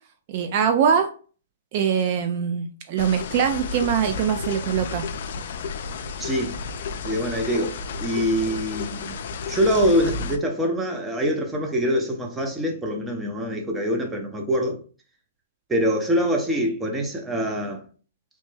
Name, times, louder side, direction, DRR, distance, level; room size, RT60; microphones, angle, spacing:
voice 1, 0.3-1.1 1.7-5.0, right 7 dB, 45° right, 0.3 m, -22 dB
sound 1, 3.0-10.4, left 4 dB, 60° left, 0.4 m, -32 dB
voice 2, 6.2-6.5 7.0-9.2 9.5-14.8 15.7-17.8, equal, 10° right, 0.6 m, -24 dB
3.1 x 2.1 x 3.2 m
hypercardioid pair, 140°, 0 cm